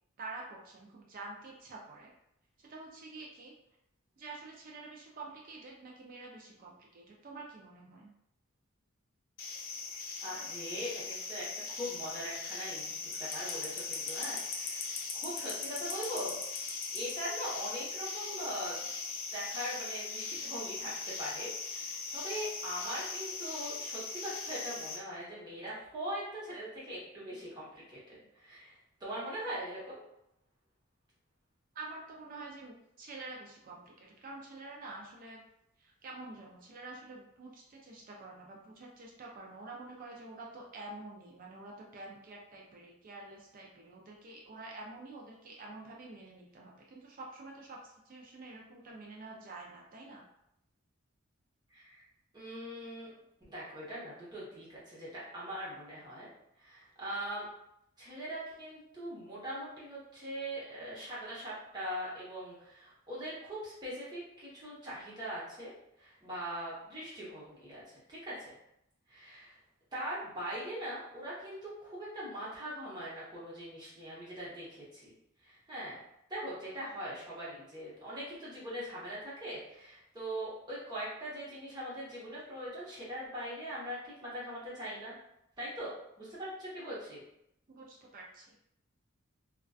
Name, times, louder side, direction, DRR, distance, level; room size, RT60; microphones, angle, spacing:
voice 1, 0.2-2.1 2.6-3.5 4.2-8.1 31.7-35.4 35.8-50.2 87.7-88.5, right 3 dB, 40° right, -2 dB, 0.4 m, -48 dB
sound 1, 9.4-25.0, left 4 dB, 65° left, 0.5 m, -39 dB
voice 2, 9.9-16.4 16.9-18.8 19.3-30.0 51.7-52.0 52.3-53.1 53.5-56.3 56.6-57.5 58.0-65.7 66.0-68.6 69.1-69.6 69.9-76.0 76.3-85.2 85.6-87.2, equal, 20° right, -8 dB, 0.9 m, -41 dB
2.4 x 2.2 x 2.3 m, 0.80 s
head